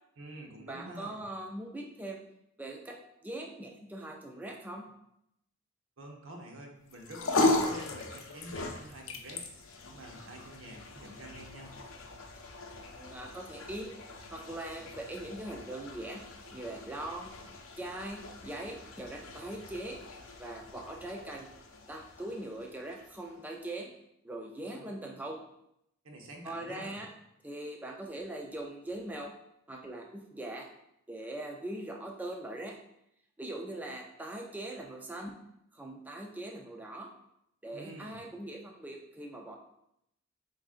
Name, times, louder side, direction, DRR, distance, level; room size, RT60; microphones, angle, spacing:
voice 1, 0.2-1.2 6.0-11.7 24.6-24.9 26.0-27.0 37.7-38.3, right 1 dB, 75° right, 1 dB, 0.8 m, -48 dB
voice 2, 0.7-2.2 2.6-3.0 3.2-4.9 12.9-13.9 14.3-16.2 16.5-17.3 17.8-20.0 20.4-21.5 21.9-23.9 24.2-25.4 26.4-27.1 27.4-29.3 29.7-30.7 31.1-32.8 33.4-35.4 35.7-37.1 37.6-39.5, right 1 dB, 10° right, 0 dB, 0.4 m, -41 dB
sound 1, 6.9-23.4, left 2 dB, 75° left, 0.6 m, -37 dB
7.2 x 2.6 x 2.5 m, 0.79 s
head